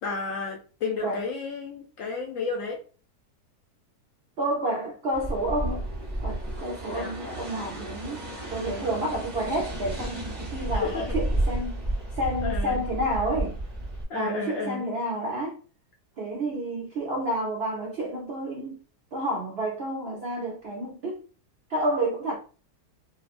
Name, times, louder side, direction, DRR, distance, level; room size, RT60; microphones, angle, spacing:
voice 1, 0.0-2.8 6.9-7.1 10.8-11.1 12.4-12.8 14.1-14.8, left 4 dB, 70° left, 0.8 m, -32 dB
voice 2, 4.4-5.9 6.2-11.8 12.1-13.6 14.1-15.6 16.2-18.8 19.1-21.2 21.7-22.4, right 1 dB, 80° right, 0.5 m, -30 dB
sound 1, 5.1-14.0, right 1 dB, 30° right, 0.5 m, -32 dB
2.9 x 2.2 x 2.4 m
omnidirectional pair, 1.8 m